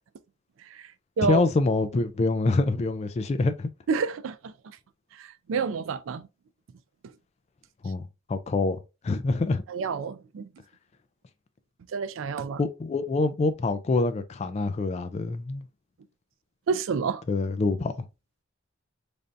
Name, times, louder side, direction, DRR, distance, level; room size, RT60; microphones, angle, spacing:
voice 1, 1.2-3.7 7.8-8.0 8.3-9.6 12.6-15.6 17.3-17.9, left 3 dB, 35° left, 0.3 m, -25 dB
voice 2, 3.9-4.5 5.2-6.3 7.0-7.1 9.7-10.5 11.9-12.6 16.7-17.2, right 5 dB, 75° right, 0.4 m, -29 dB
3.3 x 2.6 x 2.5 m
head